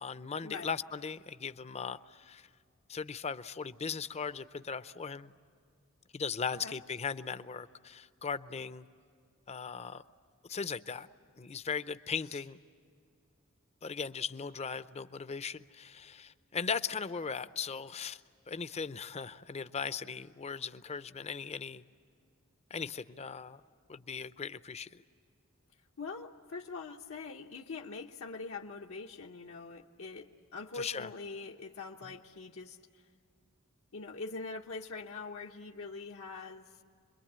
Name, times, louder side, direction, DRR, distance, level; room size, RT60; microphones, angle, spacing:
voice 1, 0.0-2.5 2.9-5.3 6.1-8.9 9.5-10.0 10.5-11.1 11.4-12.6 13.8-18.2 18.5-21.8 22.7-23.6 23.9-25.0 30.7-31.1, left 6 dB, 30° left, 14 dB, 0.6 m, -38 dB
voice 2, 26.0-33.0 33.9-36.8, left 4 dB, 80° left, 0 dB, 1.0 m, -43 dB
27.0 x 22.5 x 8.7 m, 2.3 s
head